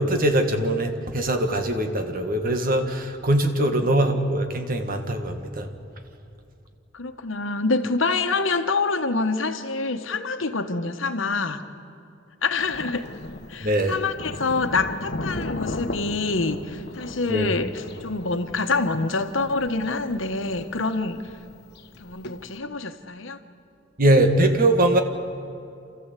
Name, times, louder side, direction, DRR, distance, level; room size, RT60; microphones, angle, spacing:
voice 1, 0.0-5.7 13.6-14.0 17.3-17.5 24.0-25.0, right 1 dB, 45° right, 6 dB, 1.8 m, -22 dB
voice 2, 3.6-4.0 6.9-11.6 12.4-13.1 13.5-21.2 22.0-23.4, left 3 dB, 75° left, 8 dB, 1.3 m, -26 dB
Thunder, 12.6-22.6, left 2 dB, 55° left, 1.2 m, -37 dB
29.0 x 14.0 x 8.3 m, 2.6 s
head